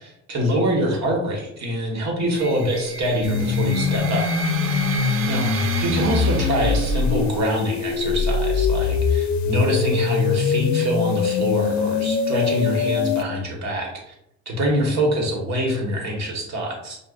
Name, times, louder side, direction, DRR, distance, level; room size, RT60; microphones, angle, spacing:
voice 1, 0.0-4.3 5.3-5.5 5.8-14.1 14.4-17.0, equal, 65° right, -1 dB, 1.4 m, -24 dB
sound 1, 2.3-7.4, right 5 dB, 45° right, 0.4 m, -32 dB
sound 2, 3.2-13.2, left 5 dB, 65° left, 0.5 m, -22 dB
6.3 x 2.4 x 2.4 m, 0.79 s
cardioid pair, 90°, 30 cm